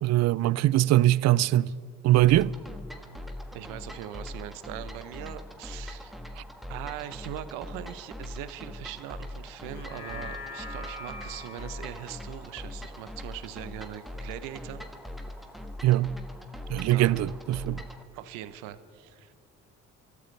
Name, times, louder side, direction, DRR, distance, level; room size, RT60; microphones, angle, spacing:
voice 1, 0.0-1.7 2.0-2.5 15.8-16.2 16.7-17.8, right 15 dB, 55° right, 0.5 m, -22 dB
sound 1, 2.2-18.0, left 1 dB, ahead, 1.5 m, -41 dB
voice 2, 3.5-6.1 6.7-14.8 16.9-17.3 18.1-19.3, right 12 dB, 85° right, 0.8 m, -41 dB
sound 2, 9.6-14.2 14.6-14.7, left 2 dB, 75° left, 4.5 m, -44 dB
26.5 x 13.5 x 3.3 m
supercardioid pair, 70°, 31 cm